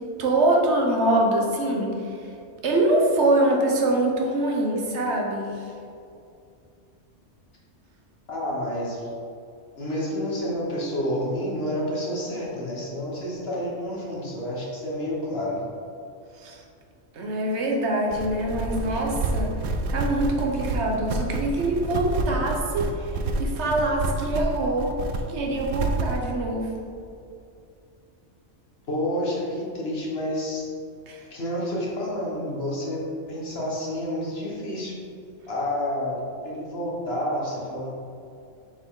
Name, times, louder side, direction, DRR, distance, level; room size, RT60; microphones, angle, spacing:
voice 1, 0.0-2.2 2.6-5.7 16.4-16.6 17.1-19.5 19.9-24.9 25.3-26.8 31.1-31.2, right 1 dB, 65° right, 0 dB, 1.2 m, -24 dB
voice 2, 8.3-9.0 9.8-15.6 28.9-30.7 31.3-33.0 33.3-35.0 35.5-37.9, left 1 dB, 55° left, -4 dB, 1.6 m, -29 dB
sound 1, 18.1-26.2, right 3 dB, 90° right, 1.0 m, -28 dB
6.8 x 4.7 x 3.8 m, 2.5 s
omnidirectional pair, 1.3 m